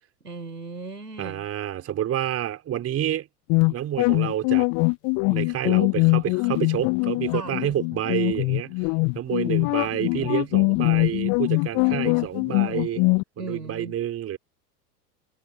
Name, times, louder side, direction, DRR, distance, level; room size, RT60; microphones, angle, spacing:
voice 1, 0.2-1.5 7.3-7.6 13.4-14.0, right 3 dB, 85° right, 6.1 m, -37 dB
voice 2, 1.2-3.3 3.7-4.7 5.3-8.9 9.1-13.0 13.4-14.4, right 11 dB, 30° right, 4.6 m, -29 dB
sound 1, 3.5-13.2, left 33 dB, 40° left, 1.0 m, -22 dB
figure-of-eight pair, 85°, 47 cm